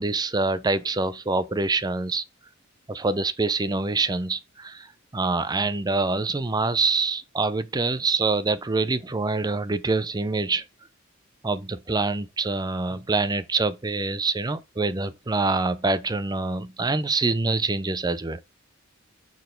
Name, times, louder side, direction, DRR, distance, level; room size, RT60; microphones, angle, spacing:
voice 1, 0.0-2.2 2.9-10.6 11.4-18.4, right 3 dB, 20° right, 0.5 m, -25 dB
6.7 x 4.1 x 5.1 m
head